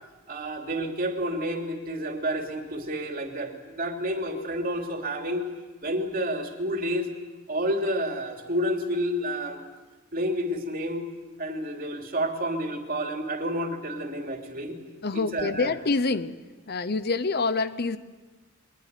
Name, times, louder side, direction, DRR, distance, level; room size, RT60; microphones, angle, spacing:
voice 1, 0.3-5.4 5.8-7.1 7.5-9.6 10.1-11.1 11.4-14.8 15.1-15.7, equal, 45° right, 3 dB, 3.0 m, -30 dB
voice 2, 15.0-16.4 16.7-18.0, left 3 dB, 50° left, 14 dB, 0.9 m, -26 dB
23.0 x 21.0 x 9.3 m, 1.3 s
head